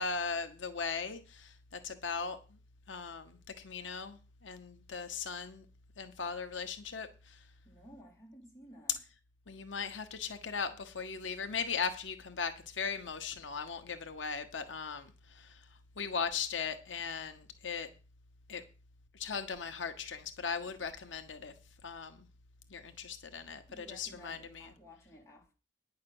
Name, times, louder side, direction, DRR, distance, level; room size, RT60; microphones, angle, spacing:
voice 1, 0.0-2.4 2.9-5.6 6.0-7.4 9.5-15.6 16.0-17.9 18.5-18.6 19.1-21.5 21.8-22.3 22.7-24.7, left 5 dB, 85° left, 1.1 m, -38 dB
voice 2, 7.6-9.0 23.7-25.5, equal, 15° left, 4.0 m, -55 dB
9.9 x 5.9 x 7.7 m
head